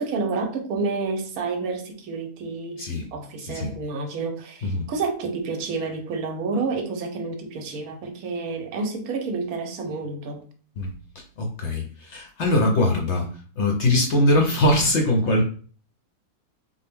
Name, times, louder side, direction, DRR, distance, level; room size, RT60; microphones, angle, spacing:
voice 1, 0.0-10.4, right 4 dB, 70° right, 1.0 m, -29 dB
voice 2, 2.8-3.1 3.4-3.7 4.6-4.9 10.8-11.0 11.4-15.5, left 1 dB, 60° left, 0.7 m, -22 dB
3.8 x 2.1 x 3.5 m
omnidirectional pair, 1.7 m